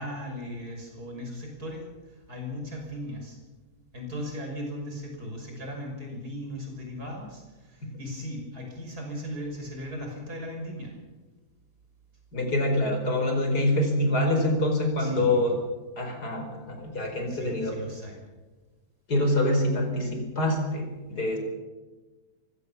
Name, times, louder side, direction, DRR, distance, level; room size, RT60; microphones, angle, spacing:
voice 1, 0.0-3.4 3.9-10.9 15.0-15.5 17.3-18.2, equal, 75° right, 1 dB, 6.6 m, -37 dB
voice 2, 12.3-15.6 16.0-17.8 19.1-21.4, left 1 dB, 85° left, 3 dB, 5.3 m, -25 dB
23.5 x 17.0 x 7.2 m, 1.2 s
omnidirectional pair, 1.7 m